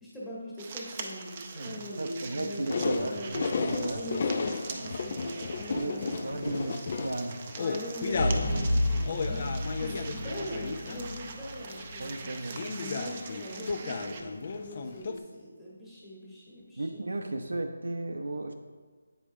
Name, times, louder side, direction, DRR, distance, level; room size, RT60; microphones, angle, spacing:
voice 1, 0.0-3.6 3.8-6.5 7.5-17.0, left 1 dB, 5° left, -9 dB, 1.4 m, -41 dB
sound 1, 0.6-14.2, right 4 dB, 30° right, 0.5 m, -44 dB
voice 2, 1.5-4.0 4.7-5.0 5.7-7.4 8.5-8.8 12.0-12.6 16.8-18.5, right 2 dB, 80° right, 5 dB, 0.6 m, -35 dB
sound 2, 2.7-8.5 8.8-11.4 11.7-12.0 12.6-15.2, left 4 dB, 40° left, 0.4 m, -33 dB
sound 3, 3.5-4.0 8.1-12.2, left 1 dB, 60° left, 0.9 m, -32 dB
8.5 x 5.0 x 2.6 m, 1.4 s
figure-of-eight pair, 165°, 0 cm